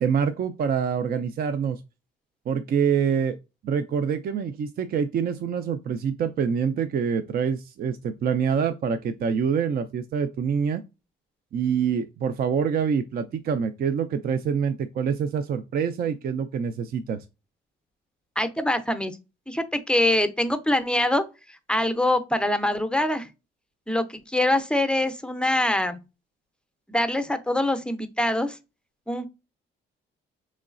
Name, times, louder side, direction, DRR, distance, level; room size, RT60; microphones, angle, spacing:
voice 1, 0.0-1.8 2.5-3.4 3.6-10.8 11.5-17.2, right 7 dB, 50° right, 0.4 m, -26 dB
voice 2, 18.4-19.2 19.5-21.2 21.7-23.3 23.9-26.0 26.9-28.6 29.1-29.3, left 1 dB, 5° left, 0.5 m, -24 dB
3.7 x 3.1 x 2.4 m
cardioid pair, 90°, 20 cm